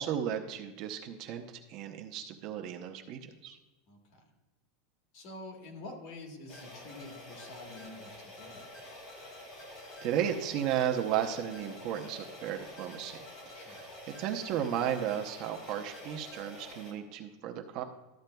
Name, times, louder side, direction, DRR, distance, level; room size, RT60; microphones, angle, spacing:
voice 1, 0.0-3.6 10.0-13.2 13.5-13.8 14.1-17.8, right 9 dB, 45° right, 5 dB, 0.7 m, -34 dB
voice 2, 3.9-4.3 5.1-8.8 13.5-13.8, left 2 dB, 50° left, 2 dB, 1.7 m, -47 dB
sound 1, 6.5-16.9, left 1 dB, 30° left, 2.4 m, -48 dB
13.0 x 8.6 x 2.3 m, 1.1 s
supercardioid pair, 155°, 0 cm